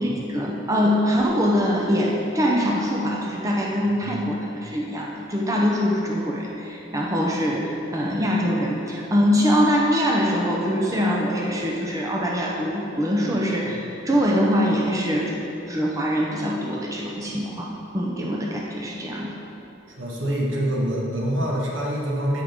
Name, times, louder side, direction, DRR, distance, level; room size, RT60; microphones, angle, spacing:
voice 1, 0.0-15.3 15.7-19.4, equal, 15° right, -2 dB, 0.7 m, -23 dB
voice 2, 3.9-4.2 13.6-13.7 20.0-22.4, equal, 85° right, -3 dB, 1.6 m, -26 dB
13.5 x 5.0 x 3.6 m, 3.0 s
head